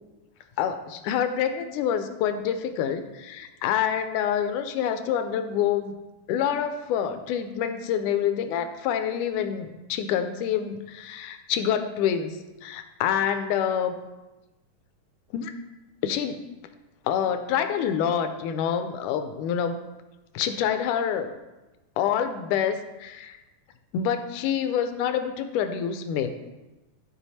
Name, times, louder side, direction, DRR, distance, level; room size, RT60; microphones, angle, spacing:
voice 1, 0.6-6.0 6.3-14.0 15.3-15.5 16.0-16.4 17.1-19.8 20.3-21.3 22.0-23.4 23.9-26.3, left 8 dB, 80° left, 9 dB, 2.1 m, -27 dB
12.5 x 5.4 x 4.1 m, 1.1 s
omnidirectional pair, 3.7 m